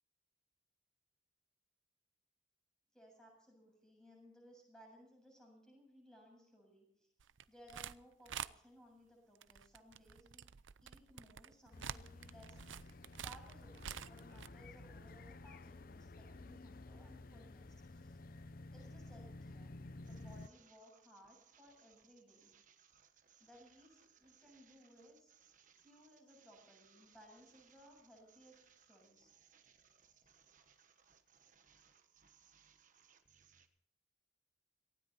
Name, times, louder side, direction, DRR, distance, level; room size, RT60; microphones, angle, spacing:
voice 1, 2.9-7.1 7.5-10.5 10.8-22.5 23.4-25.3 25.8-29.3 30.0-30.3, equal, 5° left, 0 dB, 7.9 m, -62 dB
sound 1, 7.2-8.0 8.3-8.5 9.4-14.5, right 8 dB, 85° right, 0.6 m, -48 dB
sound 2, 11.7-20.5, left 2 dB, 50° left, 0.7 m, -53 dB
sound 3, 20.0-33.7, right 7 dB, 45° right, 1.4 m, -69 dB
18.5 x 16.0 x 4.3 m, 0.69 s
head